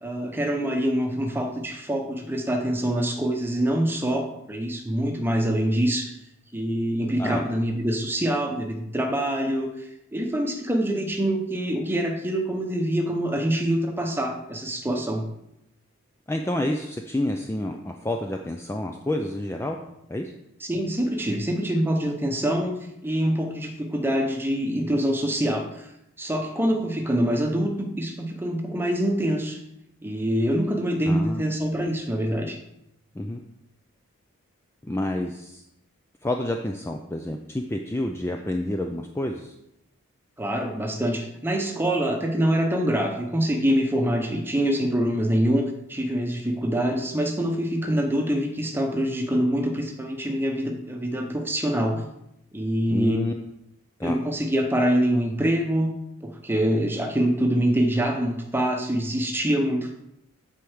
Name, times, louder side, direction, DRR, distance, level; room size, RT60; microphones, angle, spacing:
voice 1, 0.0-6.1 6.5-15.2 20.6-22.8 23.0-25.9 26.2-29.6 30.0-32.6 40.4-52.1 52.5-53.2 54.0-55.9 56.2-59.9, equal, 10° right, 3 dB, 0.9 m, -25 dB
voice 2, 16.3-19.8 20.1-20.3 31.1-31.4 33.2-33.4 34.8-35.6 36.2-39.5 52.9-53.3 54.0-54.2, left 1 dB, 10° left, 3 dB, 0.4 m, -28 dB
8.3 x 4.5 x 6.3 m, 0.84 s
head